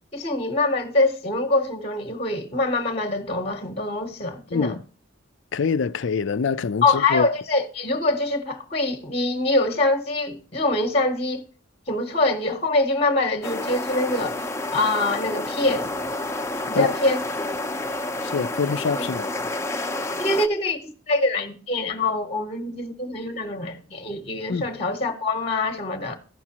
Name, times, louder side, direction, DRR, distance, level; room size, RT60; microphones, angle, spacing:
voice 1, 0.1-4.8 6.8-11.4 11.9-15.9 16.7-17.2 20.2-26.2, left 2 dB, 30° left, 0.9 m, -24 dB
voice 2, 5.5-7.3 16.7-16.9 18.2-19.3 24.5-24.7, left 5 dB, 60° left, 0.4 m, -25 dB
sound 1, 13.4-20.5, left 2 dB, 15° left, 0.6 m, -29 dB
14.5 x 6.1 x 2.9 m
head